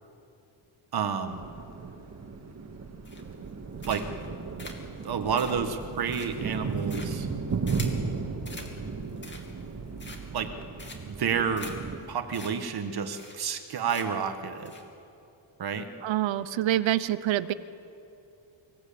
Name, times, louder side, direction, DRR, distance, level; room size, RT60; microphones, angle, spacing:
voice 1, 0.9-1.5 3.9-4.0 5.0-7.3 10.3-10.5 11.0-11.7 12.1-14.7 15.6-15.9, right 6 dB, 50° right, 7 dB, 1.6 m, -30 dB
sound 1, 1.3-12.0, right 4 dB, 30° right, 2.0 m, -35 dB
sound 2, 3.0-3.5 3.8-4.3 4.6-8.0 8.4-8.7 9.1-9.6 10.0-10.4 10.8-11.2 11.6-11.7 12.0-12.1 12.3-12.5 12.8-12.9 13.1-13.6 13.9-14.3 14.6-14.8, left 2 dB, 20° left, 2.7 m, -44 dB
voice 2, 16.0-17.5, right 13 dB, 65° right, 15 dB, 0.8 m, -26 dB
26.0 x 16.5 x 8.7 m, 2.7 s
cardioid pair, 140°, 49 cm